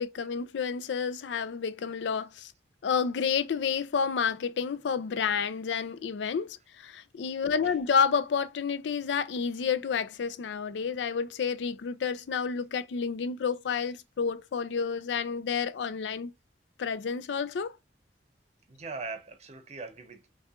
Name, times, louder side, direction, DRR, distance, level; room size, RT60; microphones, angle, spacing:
voice 1, 0.0-2.5 2.8-16.3 16.8-17.8, left 6 dB, 90° left, 0.4 m, -30 dB
voice 2, 18.7-20.3, right 4 dB, 40° right, 0.7 m, -41 dB
5.4 x 2.3 x 2.4 m
head